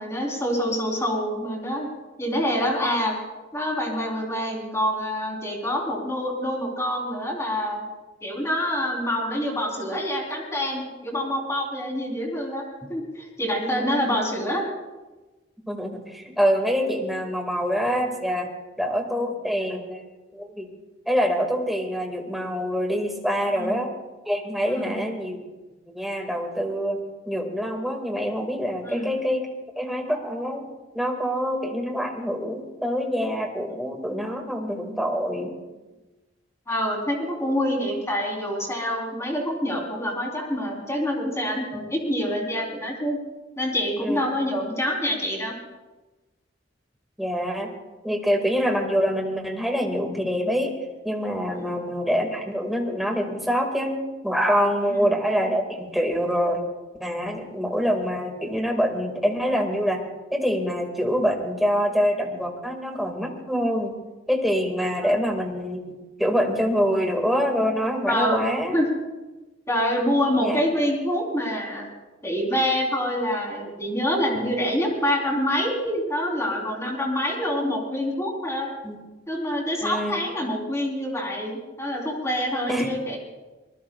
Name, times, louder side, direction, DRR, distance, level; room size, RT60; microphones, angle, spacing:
voice 1, 0.0-1.9 2.2-3.1 3.5-7.8 8.2-12.6 12.9-14.7 23.6-23.8 24.7-25.0 28.8-29.1 36.7-43.2 43.6-45.6 51.6-51.8 54.9-55.1 65.0-65.2 68.1-68.5 68.7-68.9 69.7-71.9 72.2-78.7 79.3-83.2, equal, 15° left, 0 dB, 3.7 m, -26 dB
voice 2, 13.6-14.0 15.7-18.5 18.8-20.0 20.3-20.7 21.1-23.9 24.3-25.4 25.9-27.0 27.3-29.5 29.8-30.7 30.9-35.5 44.0-44.2 47.2-47.7 48.0-50.8 51.0-54.0 54.2-56.6 57.0-60.0 60.3-63.9 64.3-65.8 66.2-68.8 70.4-70.6 78.8-79.0 79.8-80.2 82.7-82.9, equal, ahead, 2 dB, 2.0 m, -25 dB
24.5 x 20.0 x 2.4 m, 1.2 s
head